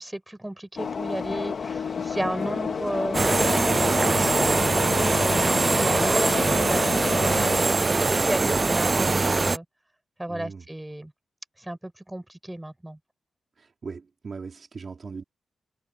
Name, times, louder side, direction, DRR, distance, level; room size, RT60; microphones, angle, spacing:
voice 1, 0.0-4.6 4.9-9.6 10.2-11.1 11.6-13.0, right 1 dB, 10° right, 6.8 m, -34 dB
sound 1, 0.8-7.6, left 6 dB, 55° left, 2.4 m, -30 dB
sound 2, 3.1-9.6, right 3 dB, 30° right, 0.3 m, -22 dB
voice 2, 10.3-10.7 13.6-15.2, right 5 dB, 45° right, 3.6 m, -39 dB
wide cardioid pair, 125°, 0 cm